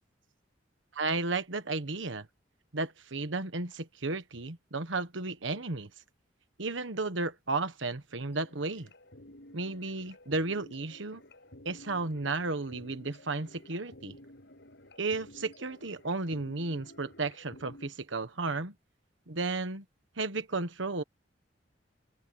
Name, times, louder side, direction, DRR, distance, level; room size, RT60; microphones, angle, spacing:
voice 1, 0.9-2.3 2.7-5.9 6.6-8.9 9.5-11.2 11.6-14.2 15.0-18.7 19.3-19.8 20.2-21.0, right 3 dB, 75° right, 1.4 m, -33 dB
sound 1, 8.2-17.9, left 1 dB, 65° left, 7.7 m, -53 dB
open air
head